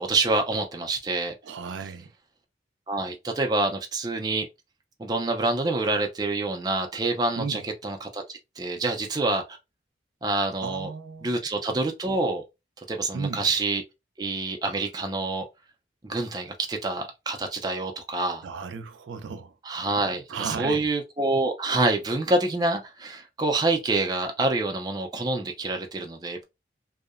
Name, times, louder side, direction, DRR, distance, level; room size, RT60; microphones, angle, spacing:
voice 1, 0.0-1.3 2.9-4.5 5.0-8.2 8.6-9.6 10.2-10.9 11.2-12.4 12.9-13.8 14.2-15.5 16.0-18.4 19.7-26.4, right 2 dB, 20° right, 0.4 m, -27 dB
voice 2, 1.4-2.1 7.4-7.6 10.6-11.4 13.1-13.5 18.4-19.6 20.3-20.9, right 5 dB, 90° right, 0.4 m, -34 dB
2.7 x 2.0 x 2.4 m
head